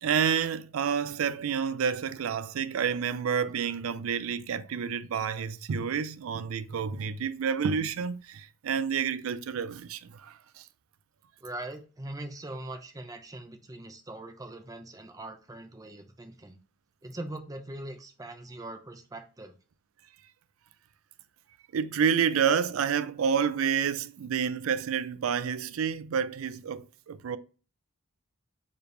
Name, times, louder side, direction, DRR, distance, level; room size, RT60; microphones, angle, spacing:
voice 1, 0.0-10.7 21.7-27.4, right 7 dB, 90° right, 0.4 m, -29 dB
voice 2, 11.4-16.6 17.0-19.5, right 1 dB, 15° right, 0.6 m, -41 dB
4.9 x 3.3 x 3.2 m
head